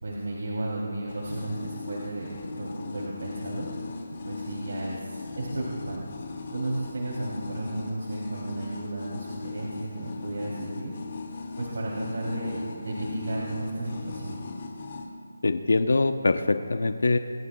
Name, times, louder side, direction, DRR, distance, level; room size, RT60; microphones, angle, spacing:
voice 1, 0.0-3.7 4.2-10.9 11.6-14.4, right 1 dB, 75° right, -4 dB, 3.1 m, -33 dB
sound 1, 1.1-15.0, left 4 dB, 40° left, 2.1 m, -38 dB
voice 2, 15.4-17.2, left 3 dB, 75° left, 9 dB, 0.8 m, -23 dB
26.5 x 20.0 x 2.3 m, 2.2 s
hypercardioid pair, 175°, 0 cm